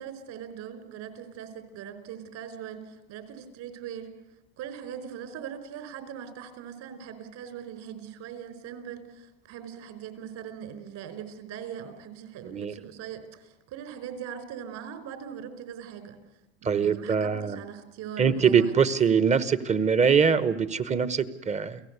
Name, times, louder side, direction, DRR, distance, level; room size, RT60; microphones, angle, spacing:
voice 1, 0.0-4.1 4.6-16.2 16.6-18.9, right 8 dB, 55° right, 10 dB, 4.8 m, -41 dB
voice 2, 16.6-17.6 18.2-21.8, right 6 dB, 20° right, 15 dB, 1.2 m, -23 dB
29.5 x 17.5 x 8.2 m, 1.0 s
supercardioid pair, 120°, 33 cm